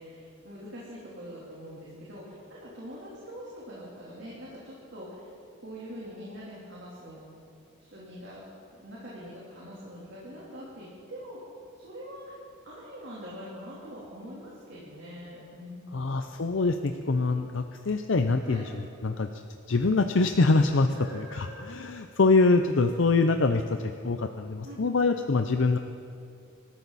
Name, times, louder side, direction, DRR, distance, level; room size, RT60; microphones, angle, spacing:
voice 1, 0.0-5.3 5.6-7.2 7.9-8.4 8.8-11.4 11.7-12.4 12.6-16.2 18.4-18.6 20.9-21.7 24.6-24.8, equal, 55° right, -7 dB, 3.5 m, -43 dB
voice 2, 15.9-25.8, left 3 dB, 65° left, 7 dB, 0.6 m, -25 dB
24.5 x 13.5 x 4.2 m, 2.6 s
head